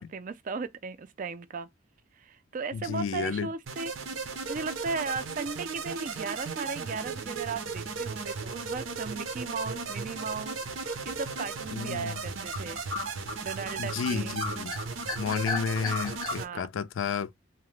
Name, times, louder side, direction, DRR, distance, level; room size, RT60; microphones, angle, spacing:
voice 1, 0.0-1.7 2.2-3.9 4.5-12.8 13.4-14.4 16.4-16.6, right 4 dB, 40° right, 0.3 m, -36 dB
voice 2, 2.7-3.5 11.7-12.2 13.8-14.8 15.2-17.3, left 6 dB, 70° left, 0.3 m, -32 dB
sound 1, 3.7-16.5, right 4 dB, 85° right, 0.6 m, -36 dB
sound 2, 10.8-11.2 11.7-11.8 12.1-14.1 14.4-16.4, left 3 dB, 20° left, 0.6 m, -35 dB
2.8 x 2.1 x 3.0 m
head